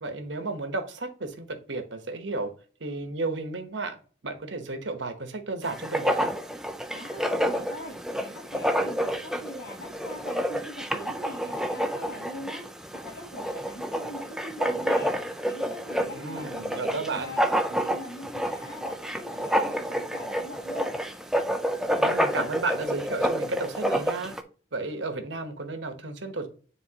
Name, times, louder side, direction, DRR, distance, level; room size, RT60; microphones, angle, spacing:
voice 1, 0.0-2.5 2.8-4.0 4.2-6.3 16.1-17.3 22.0-24.4 24.7-26.5, right 3 dB, 80° right, 7 dB, 1.1 m, -33 dB
Writing, 5.6-24.4, equal, 5° right, 0.4 m, -29 dB
voice 2, 6.9-17.4 17.7-21.0, left 1 dB, 65° left, -6 dB, 2.4 m, -42 dB
9.5 x 3.5 x 2.9 m, 0.40 s
head